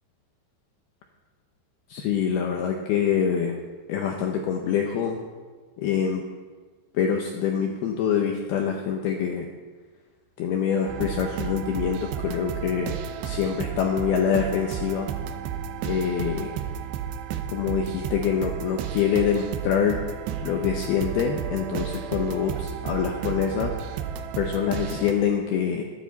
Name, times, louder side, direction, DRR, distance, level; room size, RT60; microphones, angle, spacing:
voice 1, 1.9-3.6 3.9-5.2 5.8-6.2 6.9-9.5 10.4-13.0 13.2-15.1 15.8-16.5 17.5-20.0 20.4-24.0 24.4-25.8, left 7 dB, 75° left, 3 dB, 2.3 m, -25 dB
sound 1, 10.9-25.1, right 8 dB, 75° right, 2.8 m, -32 dB
21.5 x 9.7 x 4.1 m, 1.5 s
omnidirectional pair, 5.4 m